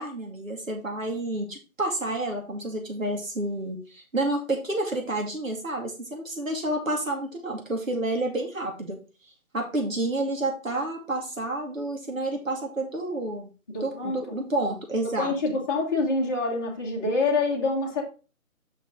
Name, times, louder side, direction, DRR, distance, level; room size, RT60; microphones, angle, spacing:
voice 1, 0.0-9.0 9.5-13.5 13.8-15.3, right 2 dB, 65° right, 2 dB, 2.7 m, -29 dB
voice 2, 13.7-14.4 15.2-18.0, left 3 dB, 15° left, -5 dB, 1.2 m, -26 dB
6.9 x 6.0 x 3.7 m, 0.32 s
figure-of-eight pair, 155°, 43 cm